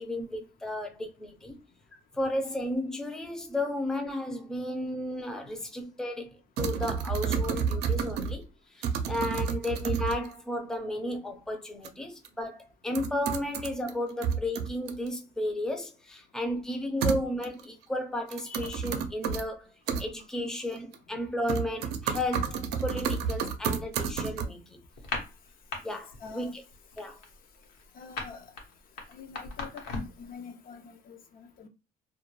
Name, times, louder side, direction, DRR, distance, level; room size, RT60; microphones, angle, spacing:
voice 1, 0.0-1.6 2.1-8.5 8.7-19.7 20.0-24.8 25.8-26.6 27.0-27.2, left 1 dB, 5° left, 0.5 m, -33 dB
sound 1, 6.6-8.4 8.8-10.3 11.8-11.9 12.2-12.3 12.9-13.9 14.2-15.1 17.0-17.6 18.3-19.4 19.9-20.0 20.8-21.2 21.5-24.5, right 6 dB, 80° right, 0.5 m, -30 dB
voice 2, 18.5-18.8 25.9-26.5 28.0-28.4 29.1-31.7, left 6 dB, 60° left, 0.5 m, -46 dB
sound 2, 24.9-25.8 26.1-26.4 26.7-30.2, left 3 dB, 75° left, 1.0 m, -37 dB
2.2 x 2.2 x 3.0 m
cardioid pair, 110°, 17 cm